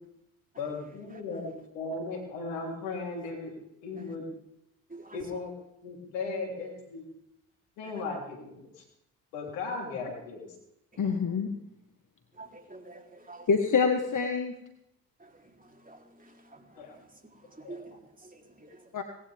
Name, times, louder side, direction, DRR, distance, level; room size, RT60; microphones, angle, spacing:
voice 1, 0.6-3.5 3.8-4.2 5.1-5.5 5.8-7.0 7.8-8.8 9.3-10.5 16.8-17.0 17.6-17.8, left 3 dB, 85° left, 1 dB, 3.8 m, -36 dB
voice 2, 11.0-11.5 13.5-14.5 18.9-19.0, left 5 dB, 50° left, 5 dB, 1.7 m, -26 dB
voice 3, 12.4-13.5 15.2-15.3 15.6-16.8 17.5-18.9, right 3 dB, 20° right, 3 dB, 3.7 m, -49 dB
19.5 x 16.0 x 3.6 m, 0.79 s
hypercardioid pair, 45°, 41 cm